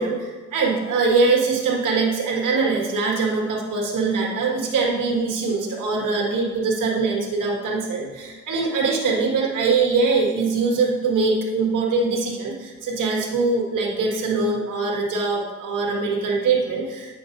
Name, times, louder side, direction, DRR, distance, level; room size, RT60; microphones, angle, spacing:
voice 1, 0.0-17.1, right 4 dB, 80° right, -1 dB, 1.8 m, -22 dB
8.6 x 7.0 x 2.6 m, 1.4 s
cardioid pair, 105°, 31 cm